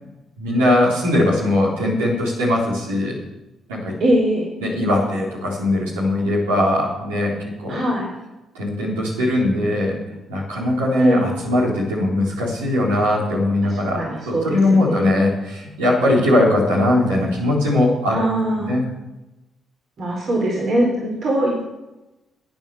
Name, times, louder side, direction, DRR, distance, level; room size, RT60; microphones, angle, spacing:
voice 1, 0.4-3.2 3.7-3.9 4.6-7.3 7.6-7.8 8.5-10.0 10.3-18.2 18.6-18.8, left 1 dB, 85° right, -5 dB, 4.0 m, -20 dB
voice 2, 4.0-4.5 7.7-8.1 11.0-11.3 13.6-15.2 18.1-18.8 20.0-21.6, right 1 dB, 55° right, -3 dB, 4.2 m, -22 dB
10.0 x 9.4 x 6.9 m, 1.0 s
hypercardioid pair, 45°, 0 cm